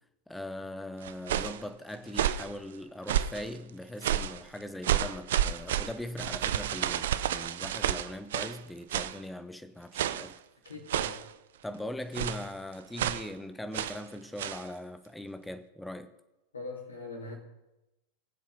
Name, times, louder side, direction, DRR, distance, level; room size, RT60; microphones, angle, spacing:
voice 1, 0.3-10.4 11.6-16.1, left 1 dB, 5° left, 0.9 m, -40 dB
sound 1, 1.0-1.6 2.1-2.5 3.1-3.5 4.0-4.4 4.8-8.6 8.9-9.2 9.9-10.3 10.9-11.3 12.1-12.5 13.0-13.3 13.7-14.0 14.4-14.6, right 11 dB, 60° right, 0.5 m, -30 dB
voice 2, 10.6-11.3 16.5-17.4, left 2 dB, 75° left, 3.1 m, -41 dB
20.5 x 7.6 x 3.9 m
figure-of-eight pair, 90°, 0 cm